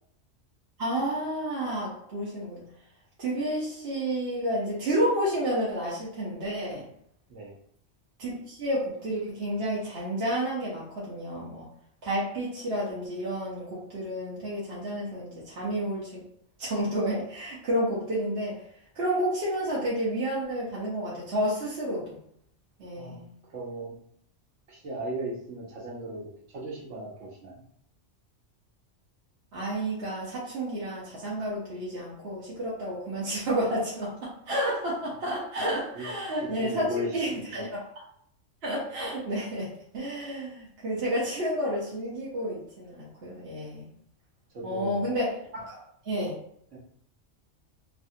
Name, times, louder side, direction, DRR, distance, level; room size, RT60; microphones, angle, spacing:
voice 1, 0.8-2.6 3.2-6.8 8.2-11.7 12.0-16.2 16.6-18.6 19.0-22.2 22.8-23.3 29.5-37.7 38.6-43.9 44.6-46.4, equal, 60° right, -7 dB, 1.1 m, -30 dB
voice 2, 23.5-24.0 24.7-27.5 35.9-36.1 36.4-37.6 44.5-45.1 46.7-46.8, right 1 dB, 75° right, -3 dB, 1.3 m, -36 dB
3.2 x 2.3 x 2.7 m, 0.68 s
omnidirectional pair, 1.3 m